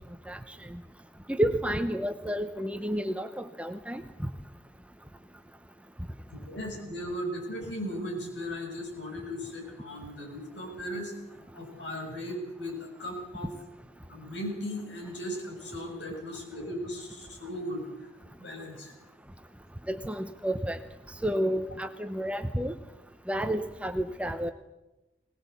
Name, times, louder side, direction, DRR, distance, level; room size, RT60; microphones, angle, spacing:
voice 1, 0.3-0.8 1.3-4.0 19.9-20.8 21.2-22.7 23.3-24.5, right 1 dB, 5° right, 8 dB, 0.8 m, -30 dB
voice 2, 6.3-13.5 14.1-18.1 18.4-18.9, equal, 70° left, 1 dB, 6.8 m, -37 dB
21.5 x 19.5 x 8.4 m, 0.96 s
head